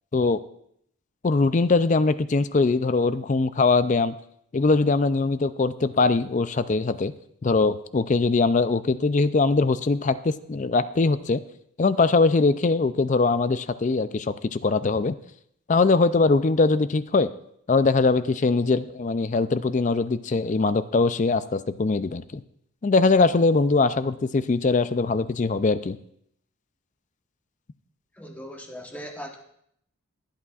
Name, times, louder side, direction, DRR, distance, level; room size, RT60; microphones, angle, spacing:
voice 1, 1.2-4.1 4.5-7.1 7.4-11.4 11.8-15.2 15.7-17.3 17.7-22.4 22.8-26.0, left 3 dB, 35° left, 13 dB, 0.4 m, -22 dB
voice 2, 28.1-29.4, equal, 5° left, 1 dB, 1.1 m, -39 dB
22.0 x 8.4 x 2.4 m, 0.71 s
head